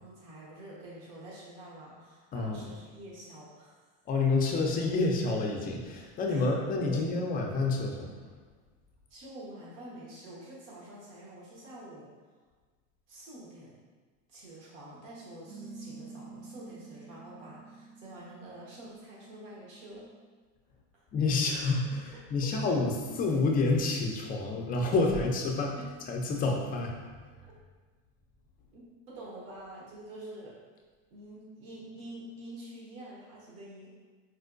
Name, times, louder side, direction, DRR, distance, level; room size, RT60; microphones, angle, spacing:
voice 1, 0.0-3.8 6.3-6.5 6.9-7.1 9.1-12.1 13.1-13.7 14.3-20.1 20.9-21.0 22.4-22.7 25.2-25.3 28.7-30.5 31.1-33.9, right 1 dB, 85° right, -6 dB, 1.1 m, -47 dB
voice 2, 2.3-2.6 4.1-8.1 21.1-22.9 23.2-25.8 26.1-27.2, left 3 dB, 25° left, 1 dB, 0.3 m, -28 dB
sound 1, 15.5-20.4, right 4 dB, 65° right, 0.6 m, -49 dB
4.3 x 2.2 x 2.5 m, 1.4 s
supercardioid pair, 125°, 38 cm